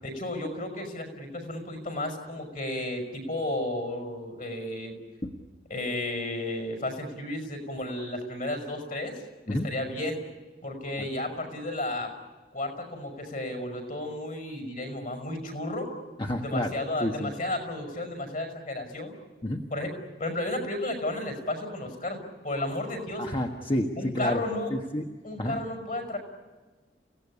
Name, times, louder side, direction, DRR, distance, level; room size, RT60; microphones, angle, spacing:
voice 1, 0.0-5.0 5.7-9.1 9.5-10.2 10.6-12.1 12.5-15.9 16.4-19.1 19.7-19.9 20.2-23.3 24.0-24.7 25.2-26.2, left 1 dB, 50° left, 5 dB, 6.0 m, -33 dB
voice 2, 16.2-16.7 17.0-17.3 19.4-19.7 23.2-24.4 24.7-25.0 25.4-25.6, left 1 dB, 30° left, 2 dB, 1.4 m, -29 dB
30.0 x 17.5 x 10.0 m, 1.3 s
head